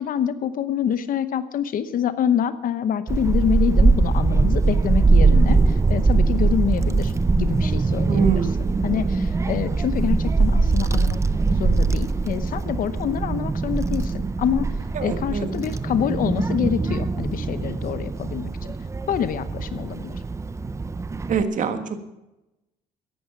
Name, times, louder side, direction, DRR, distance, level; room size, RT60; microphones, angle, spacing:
voice 1, 0.0-8.2 8.8-11.2 11.5-18.7 19.1-20.2, left 9 dB, 55° left, 13 dB, 0.9 m, -26 dB
Child speech kid speaking / Wind, 3.1-21.4, right 3 dB, 15° right, 0.5 m, -22 dB
voice 2, 8.1-8.8 14.9-15.5 21.3-22.0, right 6 dB, 50° right, 8 dB, 1.6 m, -24 dB
14.5 x 11.0 x 5.9 m, 0.95 s
cardioid pair, 110°, 17 cm